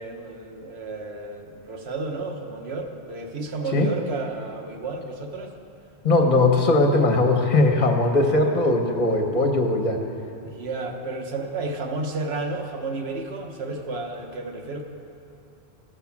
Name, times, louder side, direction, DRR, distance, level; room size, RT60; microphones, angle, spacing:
voice 1, 0.0-5.5 10.4-14.8, right 3 dB, 85° right, 3 dB, 1.2 m, -32 dB
voice 2, 6.0-10.0, left 2 dB, 45° left, 3 dB, 1.0 m, -19 dB
15.0 x 5.6 x 7.1 m, 2.7 s
omnidirectional pair, 1.0 m